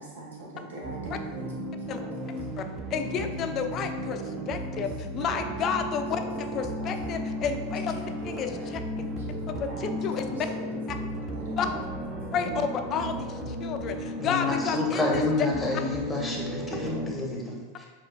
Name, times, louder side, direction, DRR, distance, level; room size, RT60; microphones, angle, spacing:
voice 1, 0.0-1.5 3.2-3.3 3.8-4.4 4.8-4.9 6.6-6.7 7.9-8.4 9.0-10.3 11.4-11.8 12.3-12.6, right 2 dB, 85° right, -3 dB, 0.8 m, -42 dB
sound 1, 0.8-17.1, equal, 25° right, 0.4 m, -35 dB
voice 2, 2.9-4.2 4.5-7.9 8.2-8.8 9.5-10.5 10.9-11.0 11.6-11.7 12.3-15.2, left 6 dB, 40° left, 7 dB, 0.3 m, -31 dB
voice 3, 14.2-17.9, left 3 dB, 10° left, -2 dB, 0.8 m, -29 dB
4.3 x 2.4 x 2.5 m, 1.3 s
hypercardioid pair, 95°, 0 cm